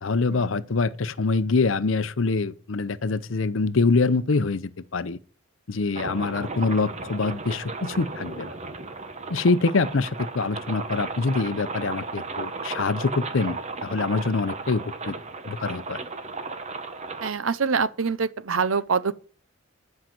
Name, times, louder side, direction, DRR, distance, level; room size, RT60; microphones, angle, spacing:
voice 1, 0.0-5.2 5.7-8.5 9.3-15.1 15.4-16.0, left 3 dB, 70° left, 0.7 m, -25 dB
sound 1, 5.9-17.3, right 3 dB, 35° right, 1.1 m, -35 dB
voice 2, 17.2-19.1, right 5 dB, 85° right, 0.7 m, -25 dB
10.5 x 5.7 x 7.5 m
head